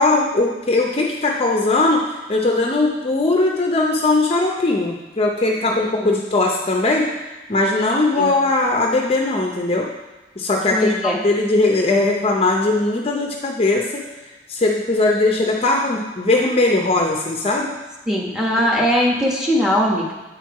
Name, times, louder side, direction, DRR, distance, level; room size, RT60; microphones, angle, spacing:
voice 1, 0.0-7.1 7.5-9.9 10.4-14.0 14.5-17.7, left 2 dB, 35° left, 1 dB, 0.6 m, -19 dB
voice 2, 10.7-11.2 18.1-20.1, equal, 5° right, -2 dB, 1.0 m, -20 dB
7.9 x 4.5 x 4.6 m, 1.2 s
head